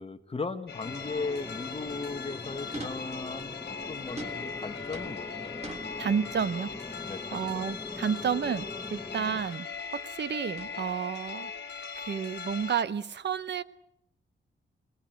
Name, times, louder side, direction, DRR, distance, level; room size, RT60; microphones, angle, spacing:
voice 1, 0.0-3.6 3.9-5.7 7.1-7.6, left 3 dB, 30° left, 7 dB, 1.4 m, -37 dB
sound 1, 0.7-12.8, left 6 dB, 55° left, 2.4 m, -40 dB
sound 2, 0.8-9.4, left 2 dB, 10° left, 1.3 m, -42 dB
sound 3, 2.7-3.6 4.2-6.7 6.9-7.3 8.4-9.0 9.2-9.6 10.5-11.3, right 2 dB, 35° right, 3.2 m, -45 dB
voice 2, 6.0-6.7 7.3-9.7 9.9-11.5 12.0-13.6, right 7 dB, 60° right, 15 dB, 0.9 m, -31 dB
24.5 x 20.0 x 7.8 m, 0.82 s
wide cardioid pair, 150°, 20 cm